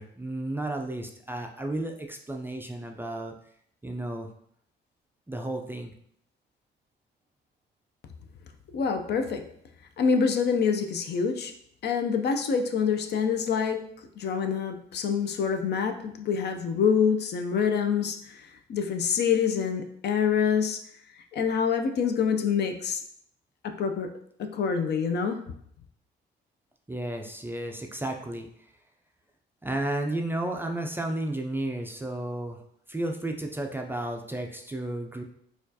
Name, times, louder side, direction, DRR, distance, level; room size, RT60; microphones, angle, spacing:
voice 1, 0.0-3.3 3.8-4.3 5.3-5.9 26.9-28.5 29.6-32.6 32.9-35.2, right 1 dB, 10° right, 2 dB, 0.3 m, -32 dB
voice 2, 8.7-9.4 10.0-11.5 11.8-13.8 14.2-18.2 18.7-20.8 21.3-23.0 23.6-24.1 24.4-25.4, left 6 dB, 55° left, 6 dB, 0.5 m, -26 dB
4.3 x 2.3 x 2.7 m, 0.68 s
cardioid pair, 90°, 20 cm